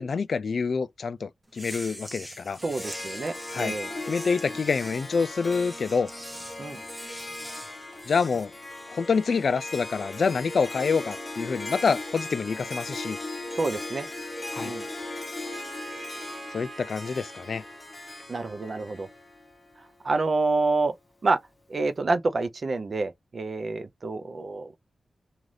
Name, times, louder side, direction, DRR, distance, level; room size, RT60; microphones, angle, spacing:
voice 1, 0.0-2.6 3.5-3.8 4.1-6.1 8.1-8.5 8.9-13.2 14.5-14.7 16.5-17.6, left 5 dB, 60° left, 0.3 m, -27 dB
sound 1, 1.5-8.5, right 1 dB, 15° right, 0.7 m, -43 dB
Harp, 2.6-19.9, left 2 dB, 20° left, 0.9 m, -38 dB
voice 2, 2.6-3.9 6.6-6.8 13.5-14.1 14.6-14.8 18.3-19.1 20.0-20.9 21.2-21.4 21.7-24.8, right 3 dB, 45° right, 0.4 m, -28 dB
Trumpet, 15.4-19.2, right 4 dB, 70° right, 0.8 m, -46 dB
2.6 x 2.4 x 3.2 m
wide cardioid pair, 135°, 0 cm